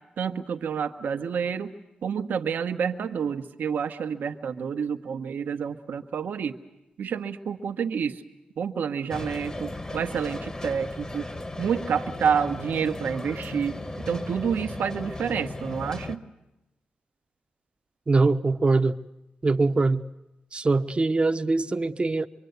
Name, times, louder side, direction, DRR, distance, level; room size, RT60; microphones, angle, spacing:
voice 1, 0.2-1.7 2.0-6.6 7.0-8.2 8.6-11.3 11.6-13.8 14.1-16.2, right 7 dB, 80° right, 6 dB, 1.2 m, -28 dB
sound 1, 9.1-16.2, left 2 dB, 25° left, 1.3 m, -36 dB
voice 2, 18.1-19.0 19.4-20.0 20.5-22.3, right 3 dB, 35° right, 8 dB, 0.9 m, -22 dB
24.5 x 24.0 x 8.1 m, 0.95 s
cardioid pair, 55°, 3 cm